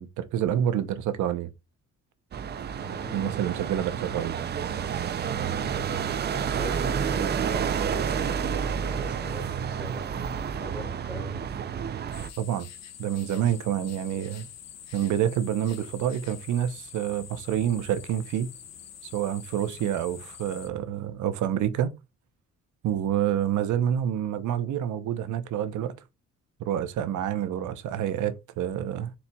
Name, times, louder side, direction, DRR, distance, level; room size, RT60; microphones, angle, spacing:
voice 1, 0.0-1.5 3.1-4.4 12.4-12.7 13.0-14.5 14.9-18.5 19.0-21.9 22.8-26.0 26.6-29.1, right 10 dB, 75° right, 0.7 m, -28 dB
sound 1, 2.3-12.3, right 7 dB, 35° right, 0.4 m, -30 dB
voice 2, 2.8-3.3 5.5-11.4, equal, 5° right, 1.9 m, -40 dB
sound 2, 12.1-20.7, left 9 dB, 60° left, 0.8 m, -46 dB
4.3 x 4.0 x 2.2 m
cardioid pair, 90°, 30 cm